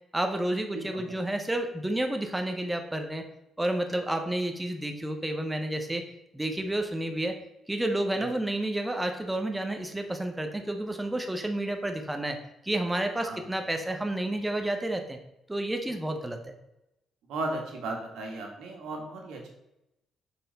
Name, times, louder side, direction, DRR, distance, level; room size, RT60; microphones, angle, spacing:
voice 1, 0.1-3.2 3.6-6.0 6.3-7.4 7.7-12.4 12.6-15.2 15.5-16.5, right 1 dB, 10° right, 5 dB, 0.6 m, -30 dB
voice 2, 0.7-1.2 8.2-8.3 13.2-13.4 17.3-19.5, right 2 dB, 85° right, 1 dB, 1.5 m, -36 dB
6.3 x 4.3 x 3.9 m, 0.87 s
cardioid pair, 110°, 0 cm